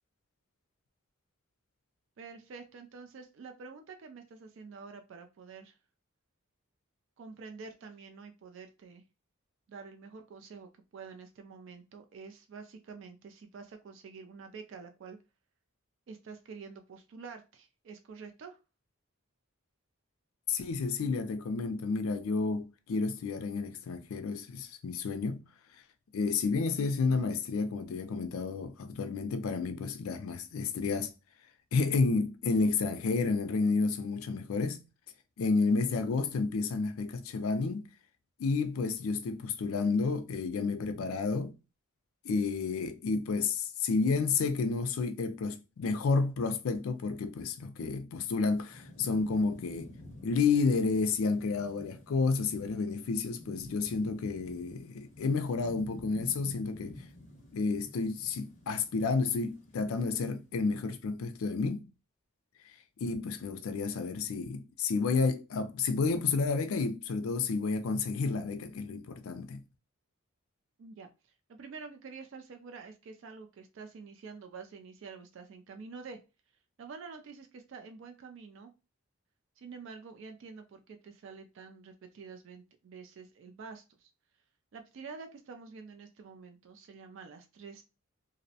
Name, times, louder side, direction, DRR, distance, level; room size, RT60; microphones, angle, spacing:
voice 1, 2.2-5.8 7.2-9.0 9.7-15.2 16.1-18.6 70.8-76.2 76.8-78.7 79.6-84.1 84.7-87.8, right 5 dB, 60° right, 0.3 m, -48 dB
voice 2, 20.5-25.4 26.1-31.1 31.7-34.8 35.4-37.9 38.4-41.6 42.2-49.9 50.2-57.0 57.5-61.9 63.0-69.6, left 4 dB, 70° left, 0.4 m, -30 dB
Thunderstorm / Rain, 48.3-60.5, left 1 dB, 35° left, 0.7 m, -51 dB
2.5 x 2.0 x 2.6 m
head